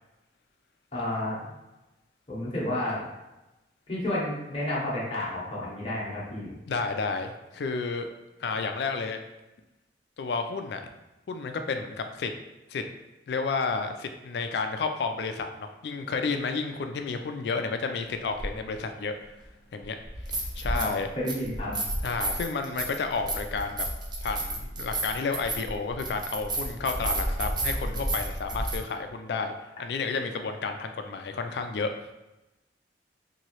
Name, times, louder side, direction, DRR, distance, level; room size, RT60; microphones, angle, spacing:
voice 1, 0.9-1.4 2.3-3.0 3.9-6.5 20.7-21.8, left 1 dB, 35° left, -6 dB, 0.9 m, -31 dB
voice 2, 6.7-8.1 8.4-9.2 10.2-10.8 11.3-12.3 12.7-12.8 13.3-19.1 19.7-20.0 20.6-21.1 22.0-23.9 24.2-31.9, left 4 dB, 65° left, 7 dB, 0.3 m, -31 dB
sound 1, 18.4-18.5 20.0-21.0 21.3-28.8, right 1 dB, 25° right, 0.4 m, -31 dB
2.9 x 2.7 x 2.9 m, 0.99 s
head